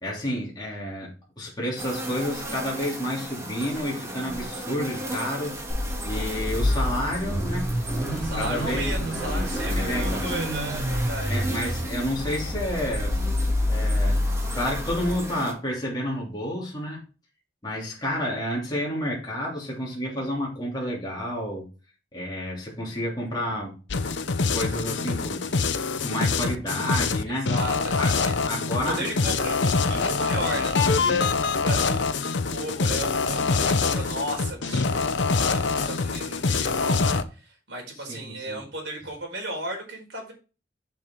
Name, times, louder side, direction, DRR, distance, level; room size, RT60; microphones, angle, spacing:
voice 1, 0.0-5.6 6.0-7.7 8.3-8.9 9.7-10.3 11.3-13.2 13.7-17.0 17.6-21.7 22.1-23.8 24.5-25.5 25.8-27.5 28.0-28.1 28.4-29.3 38.1-38.6, equal, 25° left, 3.0 m, -30 dB
sound 1, 1.8-15.5, right 1 dB, 15° right, 1.8 m, -36 dB
Car / Idling / Accelerating revving vroom, 5.7-15.1, left 1 dB, 5° left, 4.9 m, -27 dB
voice 2, 8.2-11.4 27.3-28.3 28.8-32.1 32.5-40.3, right 1 dB, 70° right, 4.8 m, -35 dB
sound 2, 23.9-37.2, left 4 dB, 85° left, 0.8 m, -25 dB
7.5 x 7.1 x 3.8 m
head